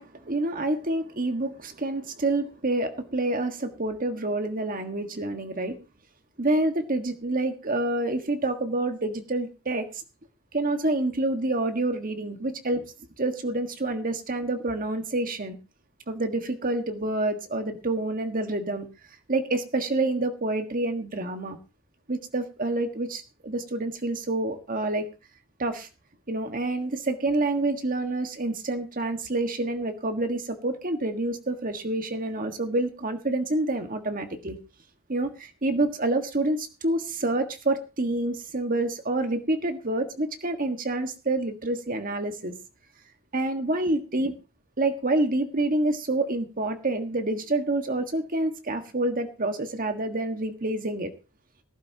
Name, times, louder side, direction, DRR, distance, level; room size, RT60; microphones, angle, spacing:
voice 1, 0.0-5.8 6.4-9.9 10.5-12.9 13.2-15.6 16.1-18.9 19.3-21.6 22.1-25.1 25.6-25.9 26.3-34.6 35.1-42.5 43.3-44.4 44.8-51.1, right 2 dB, 40° right, 7 dB, 1.6 m, -27 dB
18.5 x 11.5 x 2.9 m, 0.30 s
head